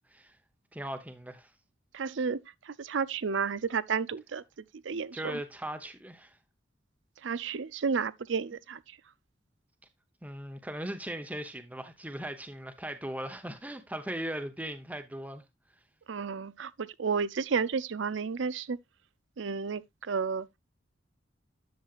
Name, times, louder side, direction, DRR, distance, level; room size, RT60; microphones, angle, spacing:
voice 1, 0.7-1.5 5.1-6.4 10.2-15.4, right 1 dB, 10° right, 0.9 m, -38 dB
voice 2, 1.9-2.4 2.7-4.4 4.8-5.4 7.2-8.8 16.1-18.8 19.4-19.8 20.1-20.5, right 5 dB, 75° right, 0.5 m, -31 dB
10.5 x 7.3 x 2.5 m
head